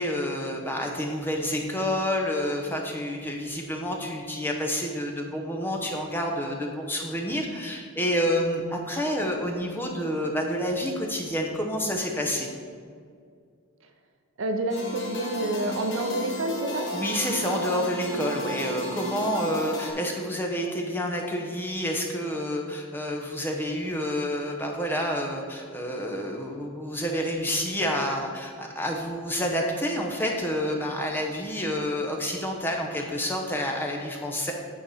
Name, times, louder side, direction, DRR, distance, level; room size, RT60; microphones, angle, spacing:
voice 1, 0.0-12.5 16.9-34.5, equal, 10° left, 1 dB, 0.7 m, -29 dB
voice 2, 14.4-16.9, right 1 dB, 60° right, 6 dB, 0.6 m, -28 dB
sound 1, 14.7-19.9, equal, 55° left, 1.5 m, -33 dB
9.0 x 4.8 x 5.4 m, 2.1 s
head